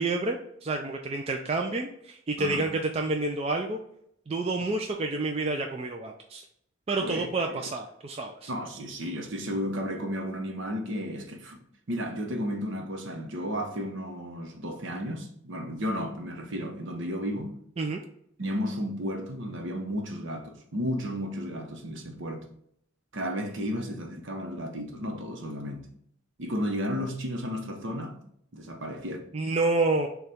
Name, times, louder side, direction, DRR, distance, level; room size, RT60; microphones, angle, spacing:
voice 1, 0.0-3.8 4.3-6.4 6.9-8.5 17.8-18.0 29.3-30.1, right 3 dB, 30° right, 0.3 m, -29 dB
voice 2, 2.4-2.7 7.0-7.6 8.5-11.6 11.9-17.6 18.4-22.4 23.1-25.9 26.4-28.2 28.5-29.3, equal, 60° right, 0.8 m, -33 dB
6.6 x 2.3 x 3.5 m
head